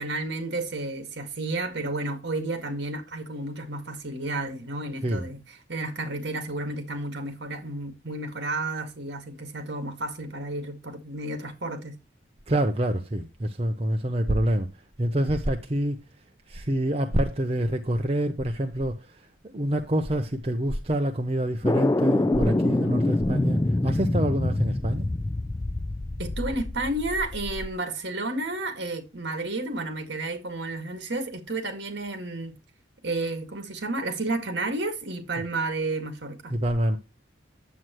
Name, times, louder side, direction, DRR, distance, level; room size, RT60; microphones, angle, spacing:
voice 1, 0.0-5.4 5.7-12.0 26.2-32.5 33.0-36.5, right 2 dB, 60° right, 1.9 m, -31 dB
voice 2, 12.5-14.7 15.0-16.0 16.5-25.1 35.4-35.5 36.5-37.0, right 1 dB, 30° right, 0.7 m, -26 dB
sound 1, 21.6-27.7, left 2 dB, 15° left, 0.4 m, -26 dB
9.3 x 7.8 x 3.0 m
head